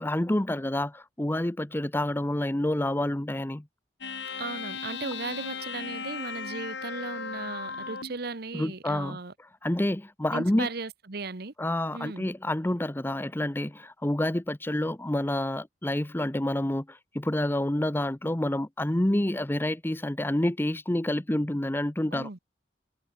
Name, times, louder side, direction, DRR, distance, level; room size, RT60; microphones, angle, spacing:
voice 1, 0.0-3.7 8.5-9.2 9.6-10.7 11.6-22.3, left 1 dB, 10° left, 0.7 m, -28 dB
sound 1, 4.0-8.2, left 5 dB, 85° left, 5.9 m, -37 dB
voice 2, 4.4-9.3 10.3-11.5 11.9-12.3 22.1-22.4, right 3 dB, 60° right, 1.3 m, -36 dB
head